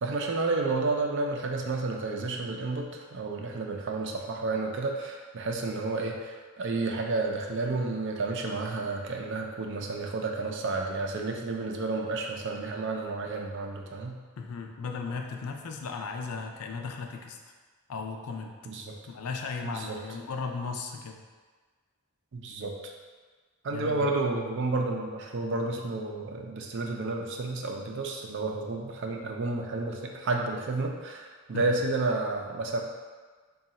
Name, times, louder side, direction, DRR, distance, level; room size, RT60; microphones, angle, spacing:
voice 1, 0.0-14.2 18.7-19.0 19.6-20.0 22.3-22.7 23.6-32.8, right 3 dB, 55° right, 2 dB, 0.5 m, -31 dB
voice 2, 14.4-17.4 17.9-18.6 19.1-21.2 23.7-24.1 31.5-31.8, left 4 dB, 75° left, 3 dB, 0.4 m, -36 dB
3.7 x 2.3 x 4.1 m, 1.4 s
head